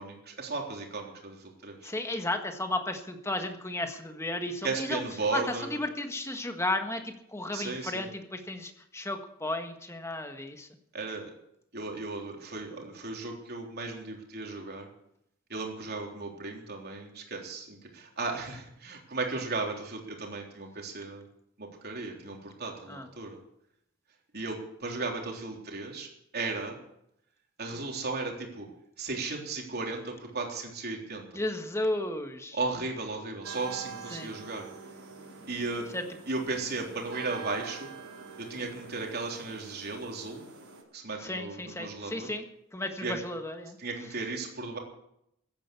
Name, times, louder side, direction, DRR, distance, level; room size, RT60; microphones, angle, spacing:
voice 1, 0.0-1.9 4.6-5.8 7.5-8.1 10.9-11.3 11.7-14.9 15.5-21.3 21.6-23.4 24.3-26.8 27.6-28.7 29.0-31.3 32.5-34.7 35.5-35.9 36.3-37.9 38.4-40.4 40.9-42.3 43.0-43.1 43.8-44.8, right 3 dB, 50° right, 1 dB, 3.6 m, -35 dB
voice 2, 1.8-5.0 5.3-10.7 22.9-23.1 31.3-32.6 34.1-34.3 35.9-36.0 41.2-42.5 42.7-43.8, left 1 dB, 15° left, 6 dB, 1.6 m, -34 dB
sound 1, 33.4-40.8, right 5 dB, 85° right, 4.4 m, -45 dB
15.0 x 10.5 x 8.3 m, 0.76 s
head